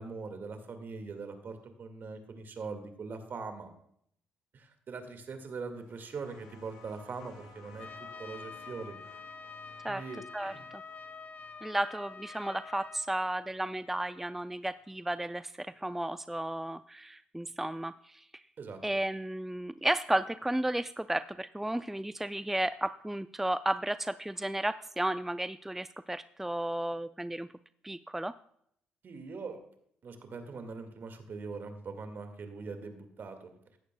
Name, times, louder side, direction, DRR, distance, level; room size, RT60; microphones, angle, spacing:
voice 1, 0.0-3.7 4.5-9.0 9.9-10.7 18.6-18.8 29.0-29.6 30.0-33.5, right 4 dB, 50° right, 7 dB, 1.8 m, -42 dB
sound 1, 5.7-15.0 16.1-16.2, left 4 dB, 85° left, 5.3 m, -58 dB
Trumpet, 7.8-13.1, left 4 dB, 35° left, 0.8 m, -47 dB
voice 2, 11.6-18.2 18.8-27.5 27.8-28.4, right 1 dB, 5° right, 14 dB, 0.3 m, -33 dB
15.5 x 11.5 x 2.2 m, 0.69 s
hypercardioid pair, 55°, 4 cm